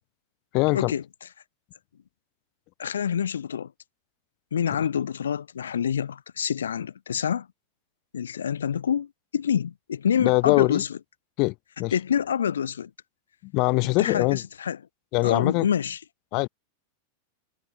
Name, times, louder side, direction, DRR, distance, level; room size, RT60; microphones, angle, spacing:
voice 1, 0.5-0.9 10.2-10.8 11.4-11.9 13.4-14.4 15.1-15.7 16.3-16.5, left 27 dB, 45° left, 3.5 m, -23 dB
voice 2, 2.8-3.7 4.5-7.5 8.1-11.0 11.9-12.9 14.0-14.8 15.2-16.0, left 8 dB, 65° left, 0.8 m, -27 dB
figure-of-eight pair, 90°, 0 cm